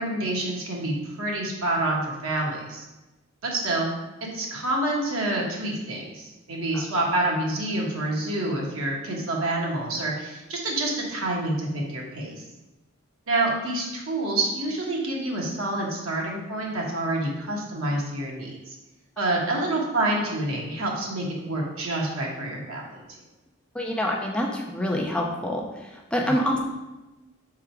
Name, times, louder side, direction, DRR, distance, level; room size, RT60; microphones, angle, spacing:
voice 1, 0.0-2.8 3.4-3.9 4.3-12.4 13.3-18.7 19.2-23.0 26.2-26.4, right 2 dB, 80° right, -2 dB, 1.4 m, -27 dB
voice 2, 23.7-25.6 26.1-26.6, equal, 5° left, -1 dB, 0.5 m, -26 dB
5.8 x 3.7 x 4.5 m, 1.0 s
head